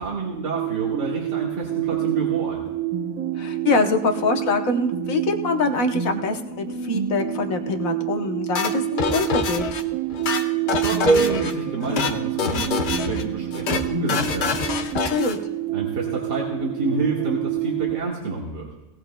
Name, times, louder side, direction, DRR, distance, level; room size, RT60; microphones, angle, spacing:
voice 1, 0.0-2.7 10.7-14.7 15.7-18.7, right 3 dB, 90° right, -4 dB, 2.3 m, -28 dB
sound 1, 0.5-18.0, right 11 dB, 60° right, 1.4 m, -28 dB
voice 2, 3.4-9.6 15.1-15.4, left 3 dB, 60° left, 5 dB, 1.3 m, -24 dB
sound 2, 8.5-9.8 10.1-11.5 11.8-12.1 12.4-13.2 13.5-13.8 14.1-15.4, left 6 dB, 85° left, 1.5 m, -26 dB
sound 3, 11.1-13.1, right 3 dB, 35° left, 1.6 m, -25 dB
19.0 x 18.0 x 2.2 m, 0.99 s
omnidirectional pair, 1.7 m